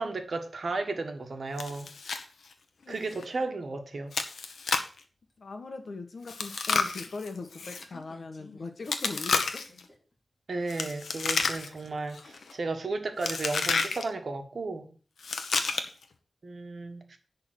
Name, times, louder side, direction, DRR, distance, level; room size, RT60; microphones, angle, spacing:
voice 1, 0.0-1.9 2.9-4.1 10.5-14.9 16.4-17.2, right 3 dB, 50° right, 1.5 m, -34 dB
Chewing mastication, 1.6-2.2 2.5-2.6 3.1-3.2 4.1-5.0 6.3-7.8 8.9-9.8 10.7-11.9 12.1-12.5 13.2-14.0 15.2-16.0, left 4 dB, 85° left, 1.1 m, -30 dB
sound 1, 5.3-5.4 7.0-8.9 9.2-10.1 10.5-10.6 11.4-12.0, left 1 dB, 25° left, 2.7 m, -51 dB
voice 2, 5.4-9.6, left 3 dB, 55° left, 1.5 m, -40 dB
11.0 x 3.9 x 7.6 m
wide cardioid pair, 140°, 0 cm